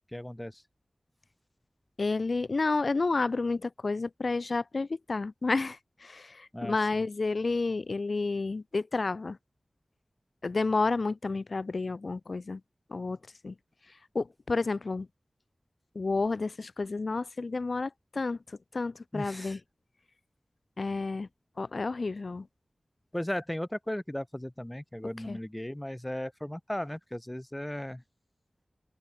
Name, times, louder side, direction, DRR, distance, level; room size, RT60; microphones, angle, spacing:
voice 1, 0.1-0.6 6.5-7.1 19.1-19.6 23.1-28.0, left 1 dB, 15° left, 0.6 m, -36 dB
voice 2, 2.0-9.4 10.4-12.6 12.9-13.2 13.4-13.5 14.1-15.1 15.9-19.6 20.8-21.3 21.6-22.5 25.3-25.4, left 3 dB, 65° left, 0.8 m, -30 dB
open air
wide cardioid pair, 65°, 0 cm